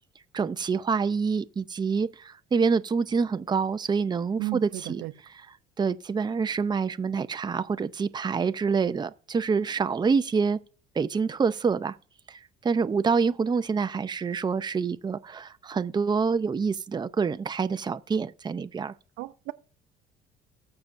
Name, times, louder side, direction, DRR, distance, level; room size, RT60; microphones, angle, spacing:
voice 1, 0.3-5.0 5.8-10.6 11.0-11.9 12.3-18.9, right 5 dB, 25° right, 0.6 m, -26 dB
voice 2, 4.4-5.1 19.2-19.5, right 21 dB, 80° right, 0.7 m, -34 dB
19.5 x 6.9 x 2.6 m
supercardioid pair, 85°, 19 cm